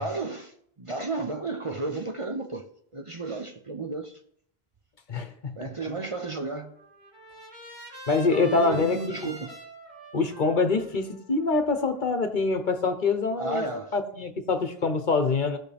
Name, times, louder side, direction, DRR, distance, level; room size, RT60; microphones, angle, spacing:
voice 1, 0.0-4.2 5.6-6.7 8.3-9.5 13.4-13.9, right 3 dB, 35° right, 0.7 m, -33 dB
voice 2, 5.1-5.6 8.1-9.0 10.1-13.6 13.9-15.6, left 4 dB, 50° left, 1.1 m, -25 dB
Trumpet, 6.3-12.5, right 1 dB, 90° right, 3.2 m, -46 dB
17.5 x 6.2 x 3.4 m
omnidirectional pair, 1.0 m